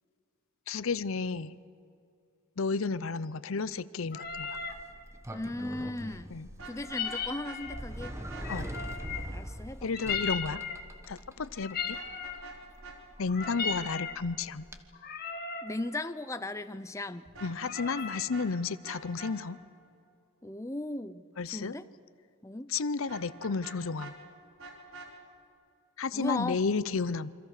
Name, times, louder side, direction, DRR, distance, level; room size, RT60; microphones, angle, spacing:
voice 1, 0.7-1.5 2.6-4.6 6.3-6.5 8.5-8.7 9.8-10.6 11.1-12.0 13.2-14.7 17.4-19.6 21.4-21.8 22.7-24.1 26.0-27.3, left 4 dB, 65° left, 17 dB, 0.7 m, -32 dB
sound 1, 4.1-4.8 6.8-7.9 8.4-9.4 9.9-10.9 11.6-12.5 13.2-14.2 14.9-15.7 17.6-18.3, left 6 dB, 45° left, 1.9 m, -36 dB
Sliding door, 4.2-14.8, right 1 dB, 15° right, 1.2 m, -44 dB
voice 2, 5.3-6.4 6.6-8.1 9.3-9.9 15.6-17.3 20.4-21.9 22.4-22.7 26.1-26.6, left 2 dB, 15° left, 11 dB, 0.5 m, -37 dB
Vehicle horn car horn honking, 6.5-7.6 8.0-8.5 11.9-12.6 12.8-13.0 13.4-13.8 17.2-18.0 18.3-18.5 18.8-19.3 23.1-24.1 24.6-25.1, right 4 dB, 75° right, 5.0 m, -46 dB
28.5 x 25.0 x 6.7 m, 2.4 s
head